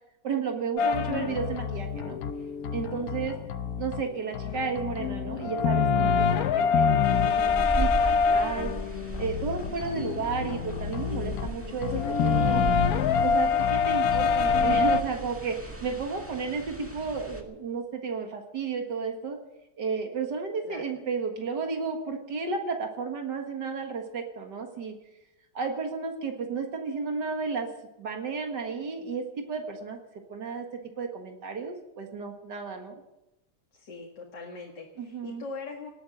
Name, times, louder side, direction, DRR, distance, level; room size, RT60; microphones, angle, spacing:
voice 1, 0.2-2.2 2.7-3.4 3.8-8.7 9.2-12.6 13.2-19.4 19.8-24.9 25.5-27.7 28.0-30.0 30.3-30.7 31.0-33.0 35.0-35.4, right 5 dB, 80° right, 3 dB, 2.3 m, -33 dB
sound 1, 0.8-4.0 4.3-15.0, left 6 dB, 65° left, 1.2 m, -26 dB
voice 2, 2.8-3.1 20.6-20.9 33.7-35.9, left 4 dB, 90° left, 0 dB, 2.6 m, -41 dB
sound 2, 7.0-17.4, right 1 dB, 10° right, 1.7 m, -37 dB
19.0 x 9.3 x 7.9 m, 0.93 s
omnidirectional pair, 1.8 m